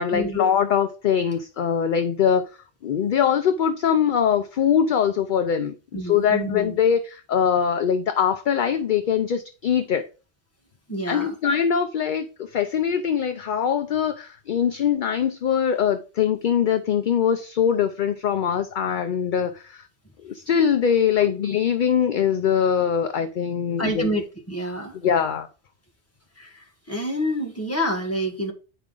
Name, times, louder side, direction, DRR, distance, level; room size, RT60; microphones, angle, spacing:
voice 1, 0.0-2.4 2.8-10.0 11.1-12.3 12.5-19.9 20.2-24.1 25.0-25.5, left 8 dB, 55° left, 0.6 m, -22 dB
voice 2, 5.9-6.8 10.9-11.3 21.1-21.3 23.8-25.0 26.4-28.5, equal, 15° left, 1.4 m, -28 dB
9.1 x 4.8 x 3.8 m
omnidirectional pair, 1.2 m